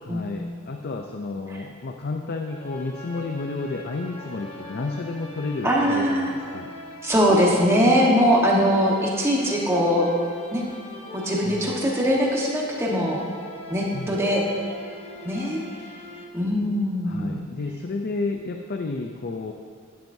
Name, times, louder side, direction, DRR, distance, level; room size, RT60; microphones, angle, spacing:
voice 1, 0.0-6.7 11.4-11.8 13.9-14.2 17.1-19.5, left 3 dB, 45° left, 4 dB, 0.5 m, -31 dB
sound 1, 2.4-16.2, left 2 dB, 25° left, 1.0 m, -41 dB
voice 2, 5.6-6.3 7.0-10.1 10.5-10.6 11.1-13.2 13.7-14.4 15.2-15.6 16.3-17.4, equal, 10° right, -3 dB, 1.3 m, -21 dB
11.5 x 11.0 x 2.7 m, 2.1 s
head